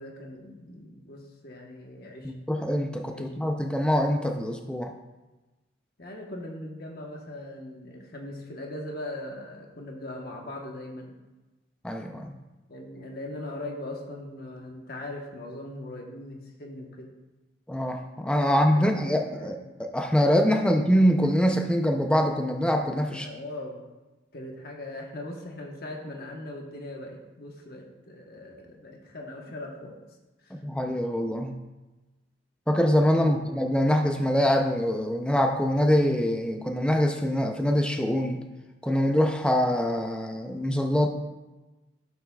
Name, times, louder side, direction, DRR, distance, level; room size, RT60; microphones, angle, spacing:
voice 1, 0.0-2.3 3.1-3.3 6.0-11.1 12.7-17.1 18.5-19.7 23.1-23.8 24.3-30.0 30.4-30.6 33.1-33.4, left 1 dB, 50° left, 1 dB, 1.1 m, -40 dB
voice 2, 2.2-4.9 11.8-12.4 17.7-23.3 30.5-31.5 32.7-38.4 38.8-41.1, equal, 5° left, 4 dB, 0.4 m, -24 dB
12.0 x 7.0 x 2.3 m, 1.1 s
head